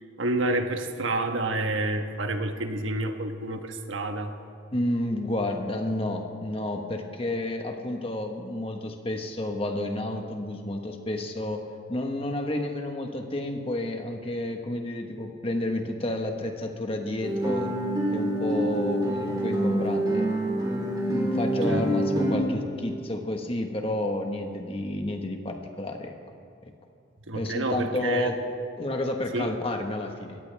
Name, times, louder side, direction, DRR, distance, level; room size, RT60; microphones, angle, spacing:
voice 1, 0.2-4.3 21.7-21.8 22.1-22.3 27.3-28.4 29.3-29.5, right 2 dB, 80° right, 6 dB, 1.3 m, -29 dB
voice 2, 4.7-17.7 18.1-20.3 21.0-26.1 27.3-28.4 28.8-30.4, left 1 dB, 30° left, 3 dB, 1.4 m, -30 dB
Guitar, 17.2-22.3, right 1 dB, 20° right, 3.8 m, -26 dB
22.5 x 17.5 x 3.5 m, 2.3 s
head